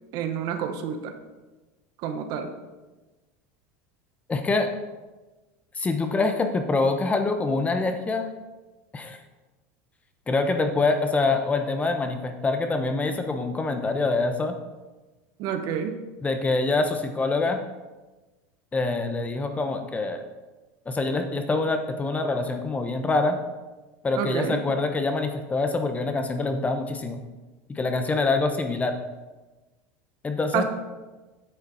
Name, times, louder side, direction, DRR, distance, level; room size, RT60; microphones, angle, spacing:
voice 1, 0.1-1.1 2.0-2.5 15.4-16.0 24.1-24.6 30.5-30.6, right 8 dB, 55° right, 7 dB, 1.2 m, -28 dB
voice 2, 4.3-4.7 5.8-8.3 8.9-9.2 10.3-14.6 16.2-17.6 18.7-20.2 20.9-23.4 24.0-27.2 27.7-29.0 30.2-30.6, left 3 dB, 20° left, 7 dB, 1.1 m, -25 dB
9.1 x 6.6 x 5.5 m, 1.2 s
supercardioid pair, 105°, 8 cm